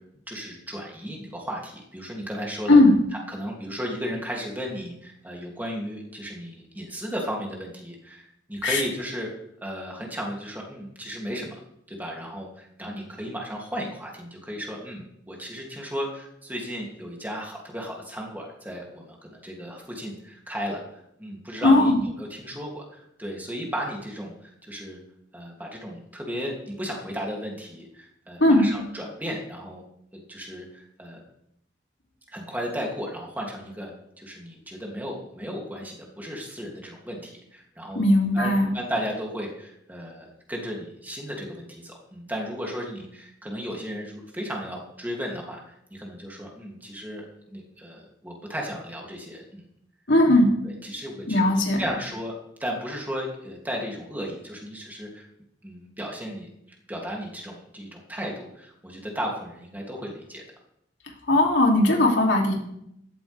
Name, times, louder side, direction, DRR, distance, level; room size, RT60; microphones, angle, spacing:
voice 1, 0.3-2.8 3.3-9.3 9.6-11.6 11.9-20.8 21.2-25.0 25.3-29.8 30.1-31.2 32.3-33.9 34.2-38.0 38.3-49.6 50.6-55.3 55.6-56.5 56.9-60.4, equal, 10° right, -2 dB, 3.0 m, -35 dB
voice 2, 21.6-22.0 28.4-28.6 37.9-38.7 50.1-50.5 51.3-51.8 61.3-62.5, left 1 dB, 80° left, 0 dB, 3.2 m, -18 dB
15.0 x 13.5 x 3.7 m, 0.75 s
head